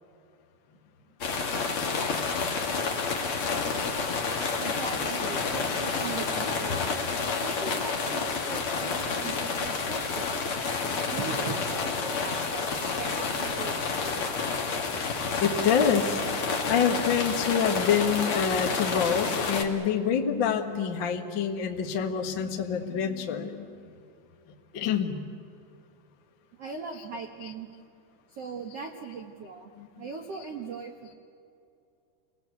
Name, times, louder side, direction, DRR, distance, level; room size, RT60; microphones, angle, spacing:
sound 1, 1.2-19.6, left 4 dB, 45° left, 2.0 m, -29 dB
voice 1, 4.6-6.9 7.3-10.3 11.1-14.1 26.6-27.7 28.3-29.7 30.0-31.1, right 5 dB, 65° right, 2 dB, 1.6 m, -39 dB
voice 2, 15.4-16.2 16.7-23.7 24.7-25.2 29.8-30.0, left 7 dB, 85° left, 3 dB, 1.0 m, -27 dB
29.5 x 19.5 x 8.3 m, 2.6 s
omnidirectional pair, 5.0 m